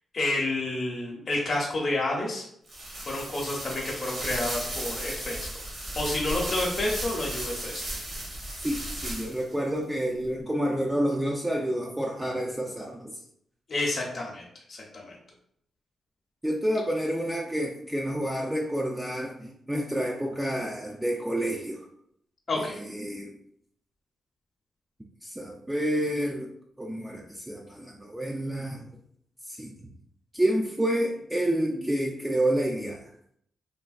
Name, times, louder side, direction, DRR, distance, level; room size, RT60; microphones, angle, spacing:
voice 1, 0.1-2.4 3.1-7.8 13.7-14.4 14.7-15.2 22.5-22.7, left 2 dB, 45° left, -3 dB, 0.6 m, -30 dB
sound 1, 2.7-9.5, right 1 dB, 50° right, 1.1 m, -35 dB
voice 2, 8.6-13.2 16.4-21.9 22.5-23.3 25.2-26.5 26.8-29.0 29.5-29.9 30.3-33.0, right 1 dB, 10° right, -1 dB, 0.3 m, -29 dB
3.3 x 2.2 x 2.3 m, 0.70 s
cardioid pair, 95°, 0 cm